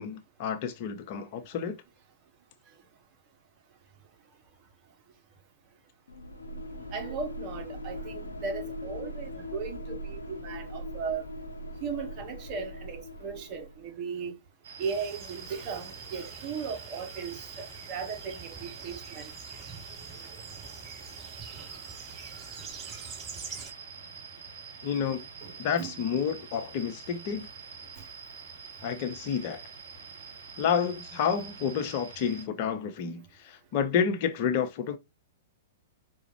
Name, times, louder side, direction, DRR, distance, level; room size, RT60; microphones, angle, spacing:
voice 1, 0.0-1.7 24.8-25.3 25.6-27.5 28.8-29.6 30.6-35.0, left 7 dB, 45° left, 0.8 m, -30 dB
sound 1, 6.1-13.9, left 1 dB, 85° left, 0.8 m, -40 dB
voice 2, 6.9-11.2 11.8-14.4 14.8-19.3 25.4-25.9, right 5 dB, 35° right, 1.1 m, -37 dB
sound 2, 14.6-32.4, right 5 dB, 65° right, 1.0 m, -46 dB
sound 3, 14.8-23.7, right 6 dB, 15° right, 2.4 m, -46 dB
4.9 x 2.4 x 3.0 m
figure-of-eight pair, 110°, 0 cm